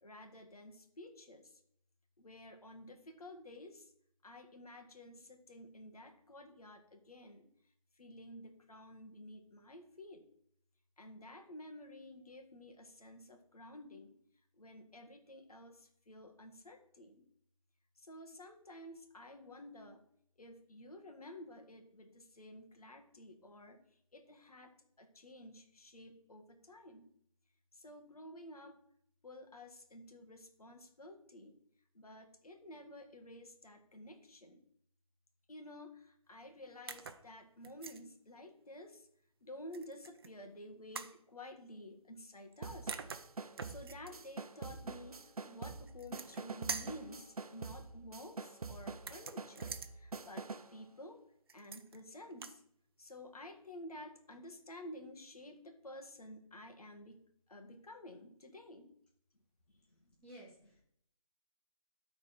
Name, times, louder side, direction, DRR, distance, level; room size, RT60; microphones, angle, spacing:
voice 1, 0.0-1.6 2.2-3.9 4.2-7.5 8.0-10.2 11.0-14.2 14.6-17.2 18.0-20.0 20.4-23.8 24.1-27.1 27.7-28.8 29.2-31.6 31.9-34.6 35.5-39.1 39.4-42.9 43.6-51.2 51.5-52.6 53.0-57.2 57.5-58.9, left 1 dB, 85° left, 5 dB, 1.9 m, -52 dB
sound 1, 36.9-37.2 37.6-38.0 39.7-40.3 40.9-41.2 42.5-42.6 42.9-44.1 45.9-46.4 46.7-47.0 49.0-49.9 51.5-52.0 52.3-52.6, right 5 dB, 40° right, 0.6 m, -45 dB
sound 2, 42.6-50.8, right 4 dB, 80° right, 0.8 m, -46 dB
voice 2, 60.2-60.8, right 1 dB, 5° left, -5 dB, 1.6 m, -55 dB
12.5 x 4.3 x 4.6 m, 0.70 s
figure-of-eight pair, 160°, 19 cm